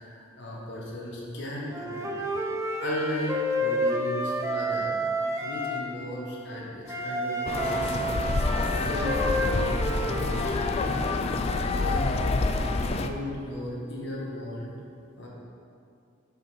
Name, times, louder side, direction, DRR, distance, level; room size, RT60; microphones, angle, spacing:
voice 1, 0.0-2.3 2.8-5.0 5.4-8.2 8.6-11.2 11.8-12.4 12.7-14.7 15.2-15.3, left 1 dB, 60° left, -4 dB, 1.5 m, -36 dB
Wind instrument woodwind instrument, 1.7-5.9 6.9-10.8, equal, 15° right, 0.6 m, -30 dB
sound 1, 7.5-13.1, left 3 dB, 30° left, 0.3 m, -27 dB
5.4 x 5.3 x 6.2 m, 2.5 s
head